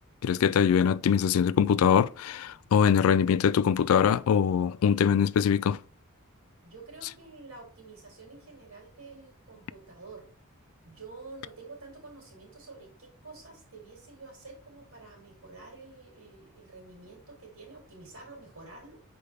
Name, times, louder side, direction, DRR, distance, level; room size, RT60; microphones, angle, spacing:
voice 1, 0.2-5.8, left 7 dB, 70° left, 0.3 m, -23 dB
voice 2, 6.6-10.3 10.8-19.0, right 3 dB, 75° right, 3.3 m, -48 dB
6.7 x 4.8 x 3.5 m
head